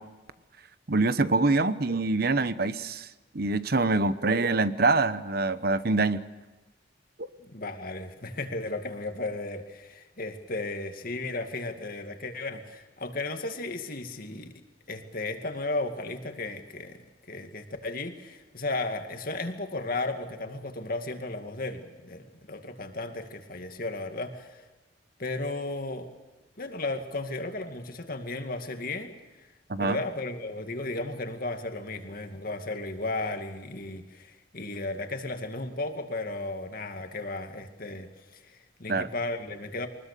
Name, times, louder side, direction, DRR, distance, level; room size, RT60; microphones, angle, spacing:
voice 1, 0.9-3.1 3.3-6.2 7.2-7.3 29.7-30.0 38.9-39.1, right 3 dB, 55° right, 13 dB, 1.0 m, -25 dB
voice 2, 7.4-14.6 14.9-24.6 25.2-26.1 26.6-29.5 29.8-39.9, left 2 dB, 50° left, 6 dB, 2.3 m, -35 dB
24.0 x 20.5 x 6.8 m, 1.2 s
head